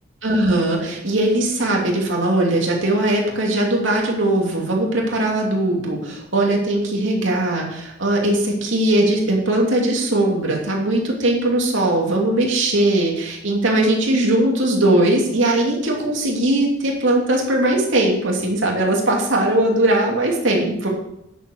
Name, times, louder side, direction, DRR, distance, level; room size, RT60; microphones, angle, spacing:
voice 1, 0.2-20.9, right 1 dB, 70° right, -1 dB, 2.8 m, -19 dB
10.0 x 7.4 x 6.6 m, 0.83 s
head